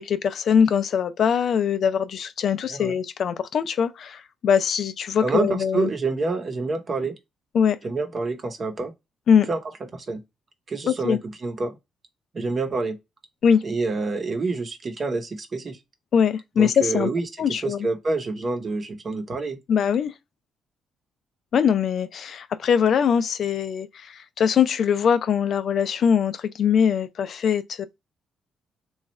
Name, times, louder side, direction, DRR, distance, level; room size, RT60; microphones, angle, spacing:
voice 1, 0.0-5.9 7.5-7.8 9.3-9.5 10.9-11.2 13.4-13.6 16.1-17.1 17.4-17.9 19.7-20.1 21.5-27.9, left 7 dB, 60° left, 0.4 m, -22 dB
voice 2, 5.2-7.1 7.8-8.9 9.5-9.6 9.9-10.2 10.7-11.8 12.3-13.0 13.6-15.8 16.6-19.6, right 3 dB, 40° right, 0.8 m, -27 dB
3.1 x 2.4 x 4.1 m
cardioid pair, 90°, 0 cm